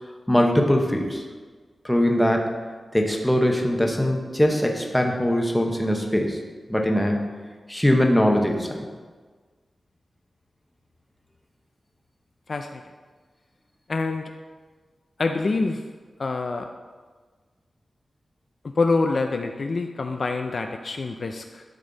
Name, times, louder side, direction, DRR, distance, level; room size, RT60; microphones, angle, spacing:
voice 1, 0.3-1.2 1.8-2.5 2.9-6.4 6.7-7.3 7.7-8.8, equal, 5° left, 1 dB, 1.0 m, -21 dB
voice 2, 12.5-12.8 13.9-14.3 15.2-15.8 16.2-16.7 18.8-21.6, left 3 dB, 50° left, 5 dB, 0.4 m, -26 dB
12.5 x 5.3 x 4.0 m, 1.5 s
wide cardioid pair, 150°, 0 cm